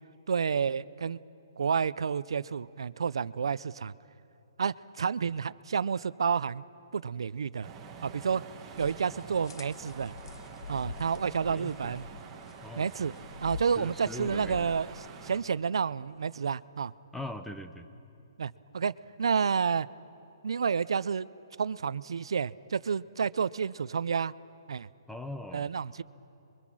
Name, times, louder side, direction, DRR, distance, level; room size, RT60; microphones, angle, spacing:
voice 1, 0.3-1.2 1.6-3.9 4.6-6.6 6.9-7.7 8.0-8.4 8.8-10.1 10.7-12.0 12.8-13.1 13.4-14.9 15.2-16.9 18.4-18.9 19.2-19.9 20.4-21.3 21.6-24.3 24.7-24.9 25.5-26.0, right 6 dB, 80° right, 18 dB, 0.4 m, -30 dB
sound 1, 7.6-15.4, right 6 dB, 15° right, 1.6 m, -47 dB
sound 2, 8.7-15.1, left 5 dB, 60° left, 0.7 m, -46 dB
voice 2, 11.5-11.9 12.6-13.1 13.7-14.7 17.1-17.9 25.1-25.7, left 1 dB, 5° left, 8 dB, 0.7 m, -41 dB
27.0 x 23.0 x 6.1 m, 2.8 s
hypercardioid pair, 165°, 3 cm